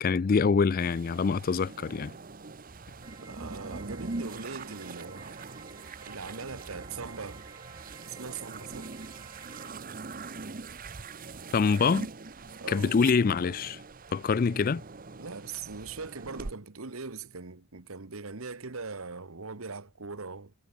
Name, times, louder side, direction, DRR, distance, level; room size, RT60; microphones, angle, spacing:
voice 1, 0.0-2.1 11.5-12.1 12.7-13.8 14.1-14.8, left 5 dB, 40° left, 0.4 m, -25 dB
sound 1, 0.8-16.5, right 3 dB, 40° right, 0.9 m, -42 dB
sound 2, 3.0-9.7, right 4 dB, 15° right, 0.5 m, -53 dB
voice 2, 3.2-5.4 6.0-7.5 8.1-8.9 12.6-12.9 15.2-20.5, right 4 dB, 75° right, 1.3 m, -41 dB
head